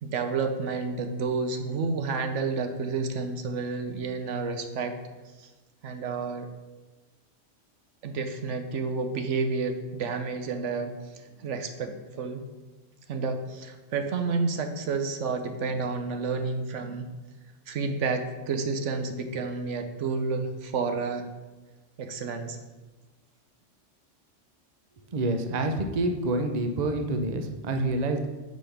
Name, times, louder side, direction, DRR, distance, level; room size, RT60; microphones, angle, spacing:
voice 1, 0.0-5.0 5.4-5.5 5.8-6.5 8.0-10.9 11.4-12.4 13.1-17.1 17.7-21.3 22.0-22.6, right 4 dB, 75° right, 7 dB, 1.1 m, -30 dB
voice 2, 25.1-28.3, right 2 dB, 40° right, 5 dB, 0.7 m, -27 dB
6.3 x 5.1 x 5.8 m, 1.2 s
omnidirectional pair, 1.3 m